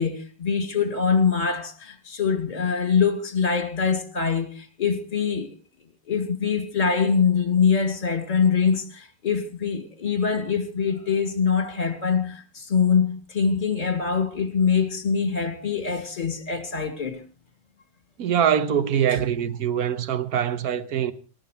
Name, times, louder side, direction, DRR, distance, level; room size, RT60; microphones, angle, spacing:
voice 1, 0.0-5.5 6.1-17.2 19.1-19.2, left 6 dB, 30° left, 2.6 m, -24 dB
voice 2, 18.2-21.1, right 9 dB, 65° right, 1.6 m, -23 dB
27.5 x 13.5 x 3.3 m
omnidirectional pair, 1.8 m